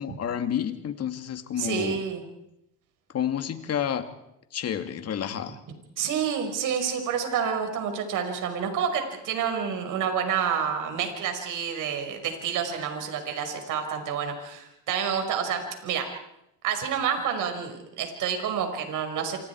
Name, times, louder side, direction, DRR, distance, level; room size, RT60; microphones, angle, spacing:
voice 1, 0.0-2.0 3.1-4.1 4.5-5.6, left 9 dB, 45° left, 8 dB, 2.6 m, -30 dB
voice 2, 1.6-2.2 6.0-16.1 16.6-19.4, right 7 dB, 65° right, 5 dB, 5.7 m, -29 dB
27.5 x 27.0 x 4.8 m, 0.84 s
cardioid pair, 105°, 34 cm